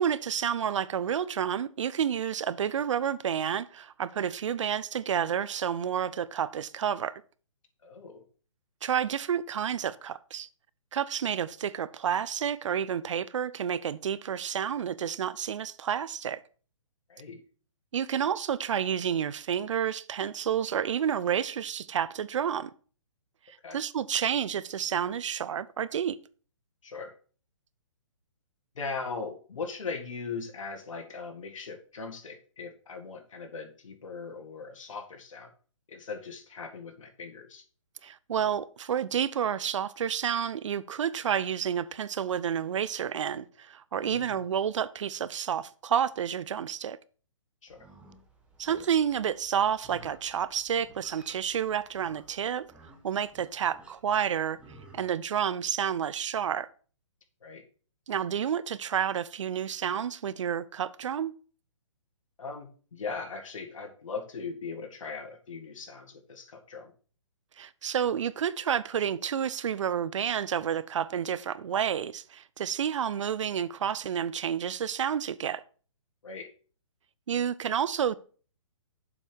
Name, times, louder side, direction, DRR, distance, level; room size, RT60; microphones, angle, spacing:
voice 1, 0.0-7.2 8.8-10.5 10.9-16.4 17.9-22.7 23.5-26.2 38.0-47.0 48.6-52.7 53.0-54.6 54.9-56.7 58.1-61.3 67.6-75.6 77.3-78.2, right 8 dB, 65° right, 0.5 m, -30 dB
voice 2, 7.8-8.2 17.1-17.4 23.6-23.8 26.8-27.1 28.8-35.5 35.9-37.6 44.0-44.4 47.6-47.9 57.4-57.6 62.4-66.9 76.2-76.5, left 4 dB, 75° left, 1.8 m, -39 dB
Livestock farm animals working animals, 47.7-55.0, right 2 dB, 5° right, 1.2 m, -55 dB
7.1 x 5.4 x 4.5 m
hypercardioid pair, 150°, 17 cm